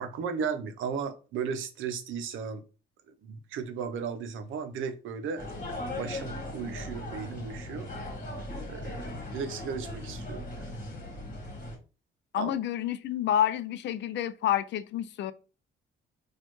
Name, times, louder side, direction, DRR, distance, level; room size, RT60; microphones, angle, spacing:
voice 1, 0.0-2.6 3.2-7.9 8.7-10.7 12.3-12.5, right 6 dB, 80° right, 0.6 m, -36 dB
sound 1, 5.4-11.8, left 1 dB, 40° left, 1.4 m, -38 dB
voice 2, 12.3-15.3, left 11 dB, 65° left, 0.4 m, -29 dB
4.2 x 2.4 x 3.0 m
cardioid pair, 90°, 20 cm